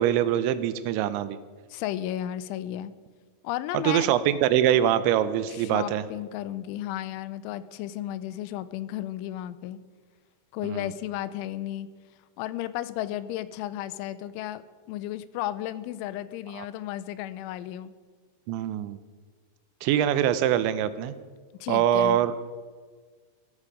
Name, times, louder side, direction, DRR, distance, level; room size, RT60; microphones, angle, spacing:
voice 1, 0.0-1.4 3.7-6.0 10.6-10.9 16.5-16.7 18.5-19.0 19.8-21.1 21.7-22.3, right 11 dB, 80° right, 13 dB, 2.9 m, -24 dB
voice 2, 1.7-2.9 3.4-4.1 5.6-9.8 10.5-11.9 12.4-14.6 14.9-17.9 21.6-22.2, left 13 dB, 90° left, 15 dB, 3.1 m, -33 dB
15.0 x 14.0 x 5.0 m, 1.5 s
omnidirectional pair, 5.4 m